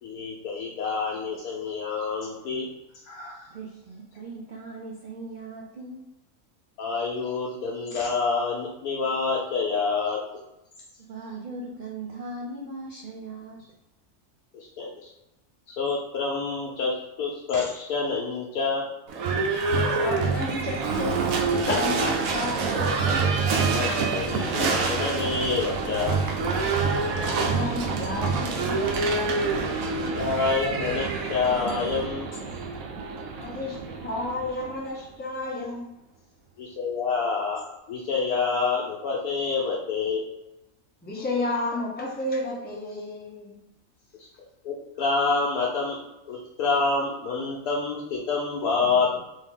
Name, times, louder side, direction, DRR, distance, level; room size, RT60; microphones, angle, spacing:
voice 1, 0.0-2.7 3.0-3.5 6.8-10.2 14.5-15.1 15.7-18.9 23.7-26.2 30.2-32.3 36.6-37.6 37.9-40.2 44.2-44.3 44.6-46.0 46.3-49.2, left 4 dB, 80° left, -4 dB, 1.1 m, -27 dB
voice 2, 3.5-6.0 11.1-13.6, right 2 dB, 90° right, -3 dB, 0.4 m, -39 dB
Livestock farm animals working animals / Bell, 19.1-35.0, right 4 dB, 70° right, 1.0 m, -27 dB
voice 3, 19.9-22.7 27.1-29.4 33.4-35.9 41.0-43.6, left 2 dB, 10° left, -3 dB, 0.5 m, -31 dB
3.6 x 2.7 x 3.6 m, 0.92 s
omnidirectional pair, 1.6 m